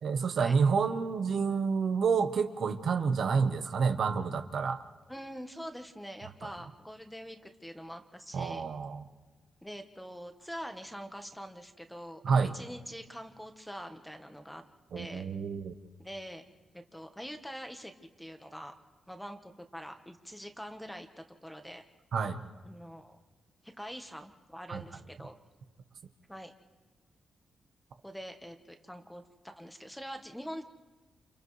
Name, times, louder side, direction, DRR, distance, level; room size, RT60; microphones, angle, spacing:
voice 1, 0.0-4.8 6.4-6.5 8.3-9.0 12.2-12.5 14.9-15.7 22.1-22.4 24.7-24.8, right 5 dB, 60° right, 7 dB, 0.9 m, -29 dB
voice 2, 5.1-8.6 9.6-14.6 14.9-15.3 16.0-16.4 16.7-17.9 18.2-18.7 19.1-21.1 21.4-21.8 22.6-23.2 23.6-25.3 26.3-26.5 28.0-30.6, equal, 5° left, 6 dB, 1.1 m, -44 dB
29.5 x 29.5 x 3.2 m, 1.2 s
wide cardioid pair, 145°, 0 cm